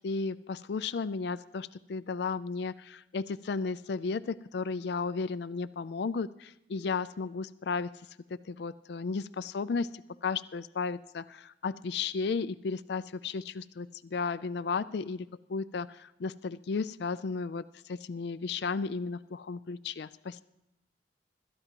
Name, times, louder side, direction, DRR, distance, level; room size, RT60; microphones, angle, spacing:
voice 1, 0.0-7.9 8.3-20.4, left 4 dB, 60° left, 13 dB, 0.4 m, -34 dB
26.0 x 13.0 x 2.9 m, 0.89 s
head